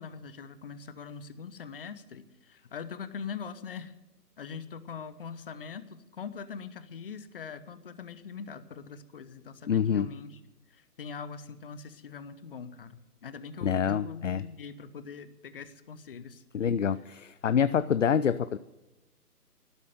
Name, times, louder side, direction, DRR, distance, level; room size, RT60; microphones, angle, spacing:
voice 1, 0.0-3.9 4.4-10.4 10.7-16.4, left 6 dB, 35° left, 13 dB, 1.0 m, -42 dB
voice 2, 9.7-10.1 13.6-14.4 16.5-18.6, left 7 dB, 55° left, 15 dB, 0.5 m, -26 dB
12.5 x 11.5 x 8.0 m, 1.1 s
figure-of-eight pair, 140°, 47 cm